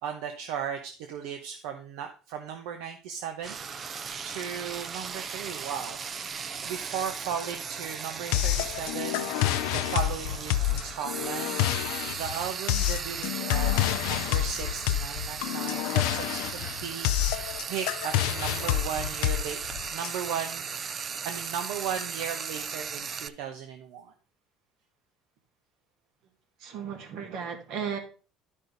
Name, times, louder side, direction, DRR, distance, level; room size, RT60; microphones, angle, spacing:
voice 1, 0.0-4.0 4.2-6.3 6.6-9.3 9.7-19.6 19.9-20.7 21.0-24.1, right 8 dB, 85° right, 5 dB, 0.9 m, -36 dB
Frying (food), 3.4-23.3, right 6 dB, 35° right, 0.5 m, -37 dB
sound 1, 8.3-20.1, left 14 dB, 85° left, 0.5 m, -28 dB
voice 2, 26.6-28.0, right 7 dB, 70° right, 5 dB, 2.2 m, -35 dB
11.0 x 5.5 x 4.0 m, 0.35 s
cardioid pair, 130°, 0 cm